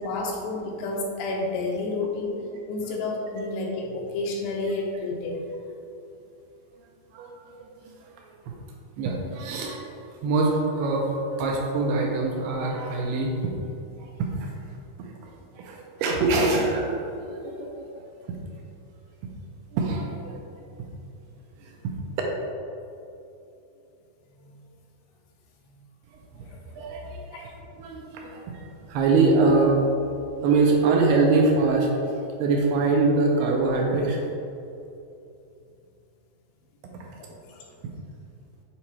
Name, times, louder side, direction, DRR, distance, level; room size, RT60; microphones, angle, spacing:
voice 1, 0.0-2.4 2.7-5.5 24.4-24.5 26.4-26.9 27.3-27.5 37.2-37.7, left 2 dB, 80° left, 0 dB, 2.6 m, -30 dB
voice 2, 7.1-8.5 9.0-9.9 10.2-14.5 15.0-15.1 15.5-17.9 18.2-18.4 19.7-20.9 21.6-21.9 26.1-26.4 26.8-29.9 30.4-34.3 36.9-37.1 37.8-37.9, right 3 dB, 80° right, 0 dB, 2.5 m, -24 dB
7.4 x 4.6 x 4.3 m, 2.7 s
omnidirectional pair, 5.0 m